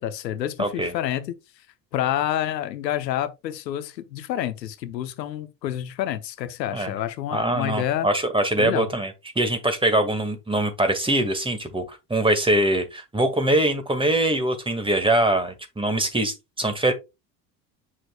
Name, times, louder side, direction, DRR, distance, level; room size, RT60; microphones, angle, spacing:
voice 1, 0.0-1.3 1.9-8.1 8.6-8.9, left 11 dB, 80° left, 0.9 m, -28 dB
voice 2, 0.6-0.9 6.7-6.9 7.3-16.9, right 1 dB, 10° right, 2.0 m, -23 dB
7.5 x 6.4 x 2.3 m
hypercardioid pair, 70°, 49 cm